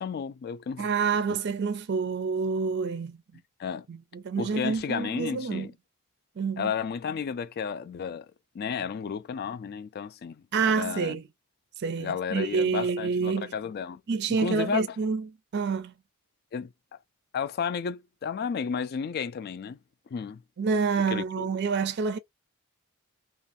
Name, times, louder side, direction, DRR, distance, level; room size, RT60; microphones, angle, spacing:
voice 1, 0.0-0.9 3.6-3.9 4.4-5.7 6.6-8.3 8.5-11.2 12.0-14.0 14.4-14.8 16.5-16.7 17.3-19.8 20.1-20.4 21.1-21.5, left 6 dB, 45° left, 0.3 m, -32 dB
voice 2, 0.8-3.4 3.9-5.7 6.4-6.7 10.5-11.3 11.8-13.5 14.1-15.9 20.6-22.2, right 5 dB, 50° right, 0.4 m, -28 dB
2.6 x 2.3 x 2.5 m
head